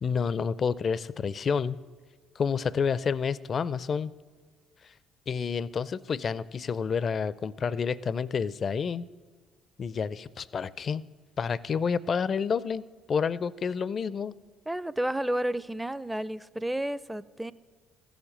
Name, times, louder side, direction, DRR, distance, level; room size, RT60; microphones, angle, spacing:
voice 1, 0.0-1.8 2.4-4.1 5.3-9.1 9.8-11.0 11.4-14.3, left 6 dB, 45° left, 20 dB, 0.4 m, -29 dB
voice 2, 14.7-17.5, right 1 dB, 10° right, 18 dB, 0.5 m, -31 dB
14.5 x 7.2 x 8.8 m, 1.4 s
hypercardioid pair, 50°, 0 cm